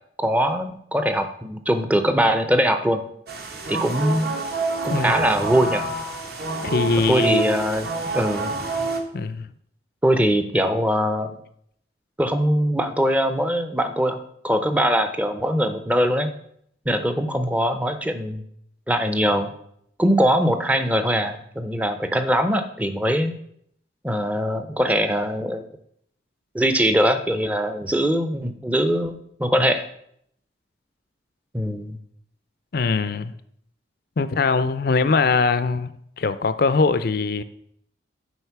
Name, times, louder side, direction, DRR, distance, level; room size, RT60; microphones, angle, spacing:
voice 1, 0.2-3.0 3.7-4.3 4.8-5.9 7.1-7.9 8.1-8.5 10.0-11.4 12.2-14.2 14.4-16.3 16.9-18.4 18.9-19.5 20.0-23.3 24.0-25.6 26.5-29.8 31.5-32.0, equal, 10° right, 8 dB, 0.6 m, -22 dB
sound 1, 3.3-9.0, right 3 dB, 55° right, 1.2 m, -27 dB
voice 2, 6.6-7.5 9.1-9.5 32.7-33.3 34.2-37.4, left 4 dB, 50° left, 13 dB, 0.4 m, -22 dB
8.0 x 4.9 x 5.8 m, 0.71 s
head